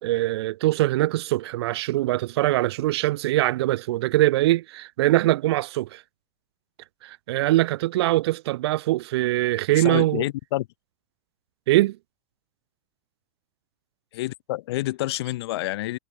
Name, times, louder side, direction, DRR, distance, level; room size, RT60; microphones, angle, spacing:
voice 1, 0.0-6.0 7.0-10.2 11.7-12.0, right 16 dB, 75° right, 2.3 m, -22 dB
voice 2, 9.8-10.7 14.1-16.0, left 17 dB, 75° left, 1.8 m, -28 dB
supercardioid pair, 160°, 13 cm